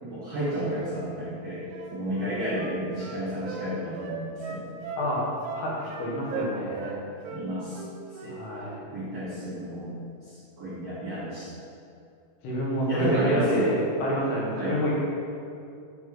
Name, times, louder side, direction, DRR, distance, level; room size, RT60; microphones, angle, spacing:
voice 1, 0.0-4.7 7.3-7.8 8.2-8.4 8.9-9.9 10.6-11.5 12.9-13.6 14.5-14.8, right 1 dB, 65° right, -12 dB, 1.6 m, -31 dB
Wind instrument woodwind instrument, 1.7-3.6 4.0-5.1 5.4-6.0 6.3-7.0 7.2-7.4 7.7-8.3 8.6-8.8, right 4 dB, 85° right, 2.8 m, -38 dB
voice 2, 5.0-7.0 8.3-8.8 12.4-14.9, equal, 75° left, -4 dB, 3.1 m, -28 dB
8.0 x 5.6 x 3.0 m, 2.5 s
omnidirectional pair, 5.0 m